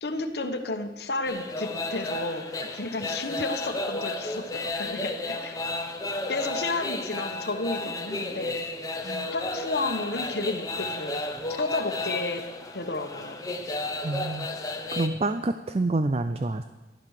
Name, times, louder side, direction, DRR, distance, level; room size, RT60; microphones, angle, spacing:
voice 1, 0.0-5.6 6.3-8.6 9.3-11.2 11.5-12.4 12.7-13.5, left 2 dB, 70° left, 6 dB, 1.3 m, -32 dB
sound 1, 1.2-15.1, left 2 dB, 20° left, 1.1 m, -33 dB
voice 2, 14.0-14.5 14.9-16.6, right 2 dB, 35° right, 10 dB, 0.4 m, -27 dB
14.5 x 12.0 x 6.6 m, 1.2 s
head